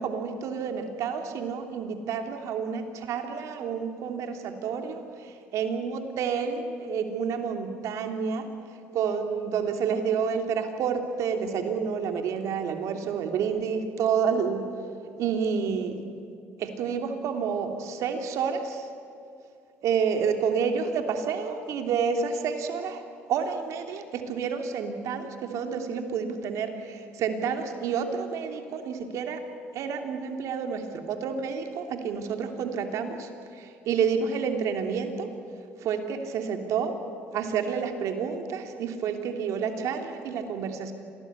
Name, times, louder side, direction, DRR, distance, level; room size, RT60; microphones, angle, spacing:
voice 1, 0.0-8.5 8.9-14.6 15.2-16.0 16.6-18.9 19.8-23.0 23.3-29.4 29.7-35.3 35.8-37.0 37.3-40.9, right 6 dB, 65° right, 5 dB, 3.1 m, -29 dB
26.5 x 19.0 x 9.9 m, 2.5 s
supercardioid pair, 75°, 6 cm